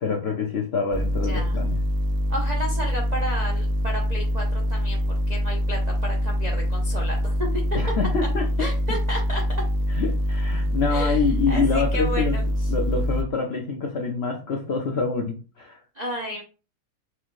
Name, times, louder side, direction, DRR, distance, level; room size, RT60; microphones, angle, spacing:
voice 1, 0.0-1.8 7.7-8.7 9.9-12.4 12.7-15.8, left 4 dB, 90° left, 2 dB, 0.5 m, -26 dB
sound 1, 0.9-13.2, equal, 85° right, 1.2 m, -24 dB
voice 2, 1.3-1.6 2.3-5.0 5.3-7.8 8.6-9.4 10.9-12.7 15.9-16.4, equal, 70° right, -1 dB, 0.4 m, -32 dB
4.6 x 2.5 x 3.1 m, 0.35 s
omnidirectional pair, 1.9 m